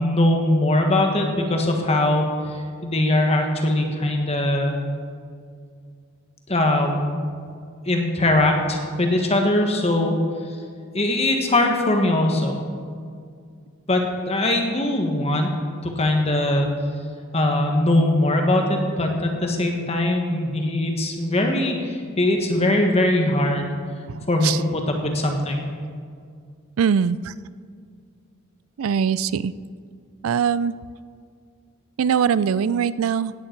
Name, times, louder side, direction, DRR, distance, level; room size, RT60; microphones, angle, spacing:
voice 1, 0.0-2.3 2.8-4.8 6.5-7.1 7.8-10.1 10.9-12.6 13.9-15.5 15.8-16.7 17.3-23.7 24.3-25.6, left 1 dB, 30° left, 3 dB, 1.5 m, -21 dB
voice 2, 26.8-27.3 28.8-29.5 30.2-30.7 32.0-33.3, right 7 dB, 70° right, 17 dB, 0.4 m, -21 dB
17.0 x 10.0 x 4.6 m, 2.2 s
head